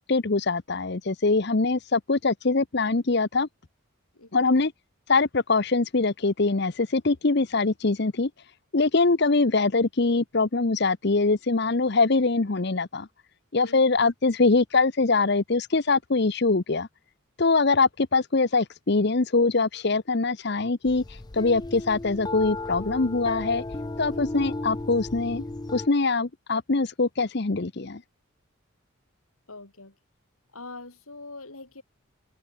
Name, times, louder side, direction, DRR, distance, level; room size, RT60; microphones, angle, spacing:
voice 1, 0.0-3.5 4.3-4.7 5.1-8.3 8.7-13.1 13.5-16.9 17.4-23.6 24.0-25.4 25.7-28.0, left 3 dB, 50° left, 0.8 m, -23 dB
voice 2, 4.1-4.5 13.6-14.1 29.5-29.9 30.5-31.8, left 3 dB, 85° left, 4.5 m, -44 dB
sound 1, 20.8-25.9, left 2 dB, 20° left, 0.4 m, -35 dB
head